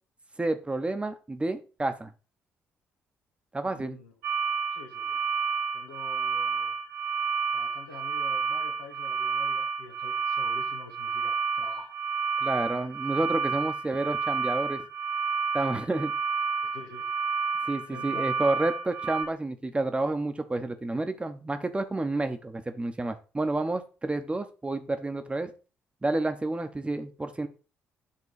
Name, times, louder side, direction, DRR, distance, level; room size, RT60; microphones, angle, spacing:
voice 1, 0.4-2.1 3.5-4.0 12.4-14.8 15.5-16.1 17.7-25.5 26.0-27.5, right 2 dB, 20° right, 1.0 m, -30 dB
voice 2, 3.6-4.1 4.7-5.3 5.7-6.7 7.5-12.0 16.7-17.1 17.9-18.4, left 4 dB, 80° left, 1.1 m, -47 dB
sound 1, 4.2-19.2, right 4 dB, 75° right, 1.5 m, -30 dB
8.6 x 3.7 x 5.0 m
figure-of-eight pair, 45°, 6 cm